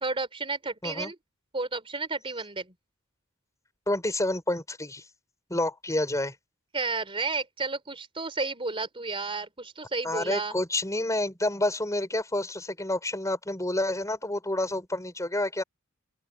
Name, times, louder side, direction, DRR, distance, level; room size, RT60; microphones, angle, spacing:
voice 1, 0.0-1.2 1.5-2.7 6.7-10.5, right 3 dB, 25° right, 3.4 m, -32 dB
voice 2, 3.9-5.0 5.5-6.3 10.0-15.6, left 1 dB, 15° left, 5.9 m, -29 dB
open air
head